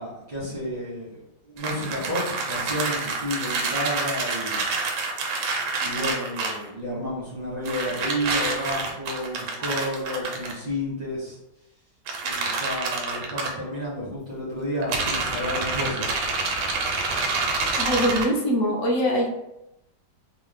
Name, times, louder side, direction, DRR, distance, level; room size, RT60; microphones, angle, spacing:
voice 1, 0.0-4.6 5.8-11.4 12.2-16.2, equal, 35° right, -6 dB, 0.6 m, -31 dB
sound 1, 1.6-6.7 7.6-10.5 12.1-13.5 14.8-18.2, right 3 dB, 75° right, 1.2 m, -27 dB
voice 2, 17.8-19.3, equal, 60° left, -1 dB, 0.9 m, -23 dB
3.1 x 2.0 x 3.5 m, 0.87 s
omnidirectional pair, 1.9 m